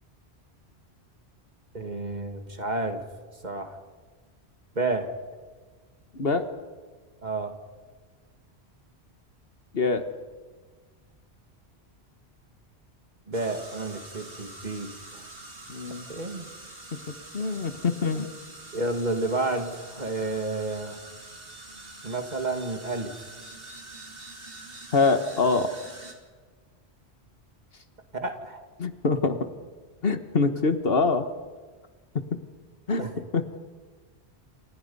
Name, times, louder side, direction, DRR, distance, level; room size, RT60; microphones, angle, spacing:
voice 1, 1.7-3.0 3.4-3.8 4.8-5.1 7.2-7.5 13.3-15.2 16.1-16.5 18.7-21.0 22.0-23.1 28.1-28.7 33.0-33.1, right 2 dB, 40° right, 6 dB, 2.3 m, -30 dB
voice 2, 6.1-6.4 9.7-10.0 15.7-16.1 17.3-18.3 24.9-25.7 28.8-29.4 30.0-31.2 32.1-32.4 32.9-33.0 33.3-33.4, left 4 dB, 60° left, 9 dB, 1.7 m, -24 dB
sound 1, 13.3-26.1, right 2 dB, 60° right, 3.2 m, -45 dB
28.0 x 26.5 x 5.5 m, 1.4 s
omnidirectional pair, 1.1 m